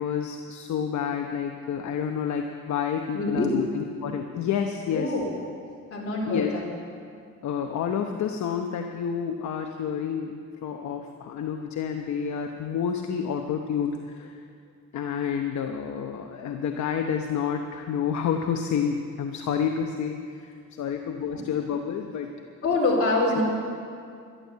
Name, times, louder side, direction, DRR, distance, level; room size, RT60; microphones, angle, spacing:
voice 1, 0.0-5.1 6.3-6.5 7.4-14.4 14.9-22.3, left 7 dB, 70° left, 4 dB, 1.0 m, -29 dB
voice 2, 3.1-3.6 4.9-5.3 5.9-6.7 21.3-21.4 22.6-23.4, left 2 dB, 50° left, -2 dB, 4.2 m, -25 dB
12.5 x 12.5 x 7.4 m, 2.3 s
cardioid pair, 90°, 30 cm